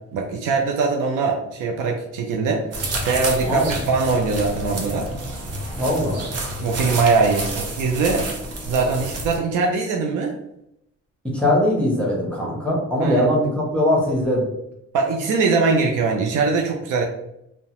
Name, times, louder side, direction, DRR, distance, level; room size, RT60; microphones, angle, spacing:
voice 1, 0.1-2.7 3.1-5.1 6.6-8.3 8.7-10.3 13.0-13.2 14.9-17.0, right 4 dB, 85° right, 1 dB, 0.5 m, -21 dB
sound 1, 2.7-9.4, right 1 dB, 55° right, 0.7 m, -29 dB
voice 2, 3.4-3.7 5.8-6.2 11.3-14.5, left 1 dB, 5° left, -4 dB, 0.9 m, -21 dB
2.7 x 2.1 x 2.9 m, 0.82 s
cardioid pair, 90°, 30 cm